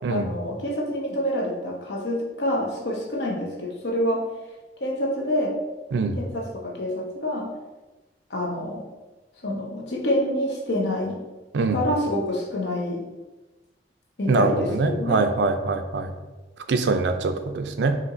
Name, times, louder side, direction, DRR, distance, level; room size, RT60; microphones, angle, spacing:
voice 1, 0.1-4.3 4.8-5.6 6.2-7.5 8.3-8.9 9.4-11.2 11.7-13.0 14.2-15.2, left 1 dB, 75° left, 0 dB, 0.8 m, -27 dB
voice 2, 14.3-16.1 16.7-18.0, right 3 dB, 75° right, 8 dB, 0.4 m, -23 dB
5.6 x 2.9 x 2.5 m, 1.1 s
head